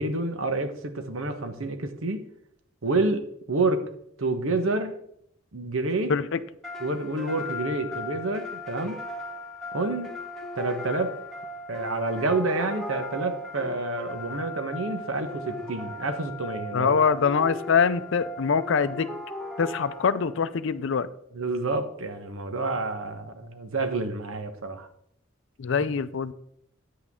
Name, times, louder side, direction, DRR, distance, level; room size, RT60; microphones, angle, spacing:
voice 1, 0.0-2.2 2.8-3.9 4.2-5.0 5.5-6.1 6.8-9.0 9.7-10.1 10.5-11.1 11.7-16.9 21.3-24.9, right 2 dB, 90° right, 8 dB, 1.1 m, -28 dB
sound 1, 6.6-20.5, left 2 dB, 5° left, 1.5 m, -38 dB
voice 2, 16.7-19.1 19.6-21.1 25.6-26.3, left 6 dB, 65° left, 14 dB, 0.5 m, -24 dB
9.9 x 8.4 x 3.7 m, 0.71 s
head